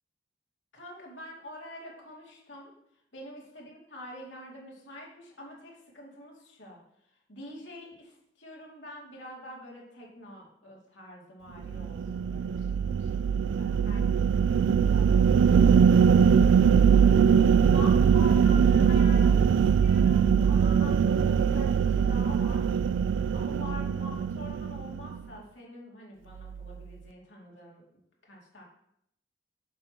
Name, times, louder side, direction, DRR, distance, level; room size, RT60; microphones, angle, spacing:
voice 1, 0.7-2.7 3.1-6.8 7.3-14.3 14.7-16.8 17.7-22.7 23.1-27.8 28.2-28.6, left 1 dB, 75° left, -2 dB, 2.5 m, -46 dB
sound 1, 11.6-25.2, right 7 dB, 85° right, 0.3 m, -22 dB
8.6 x 6.9 x 3.0 m, 0.74 s
head